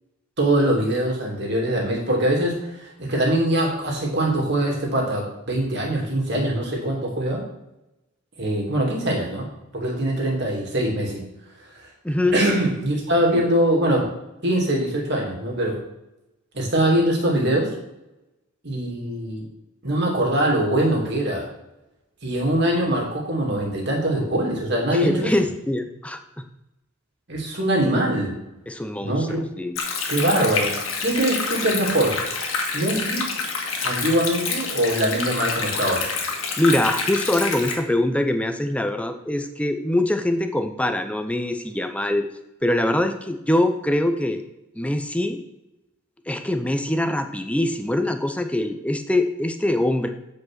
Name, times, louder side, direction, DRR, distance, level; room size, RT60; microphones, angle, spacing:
voice 1, 0.4-7.4 8.4-9.5 9.7-11.2 11.8-11.9 12.3-14.1 14.4-15.8 16.5-17.7 18.6-19.5 19.8-21.5 22.2-25.3 27.3-28.3 29.0-29.5 30.1-30.7 31.0-32.2 32.7-33.3 33.8-36.1, right 1 dB, 55° right, -1 dB, 2.6 m, -22 dB
voice 2, 12.0-12.4 13.3-13.5 24.9-26.2 28.7-29.3 29.6-29.8 36.6-42.3 42.6-44.4 44.8-45.4 46.3-50.1, left 1 dB, 5° left, 7 dB, 0.6 m, -23 dB
Stream, 29.8-37.8, left 4 dB, 85° left, 1.7 m, -27 dB
8.1 x 5.2 x 6.2 m, 0.94 s
head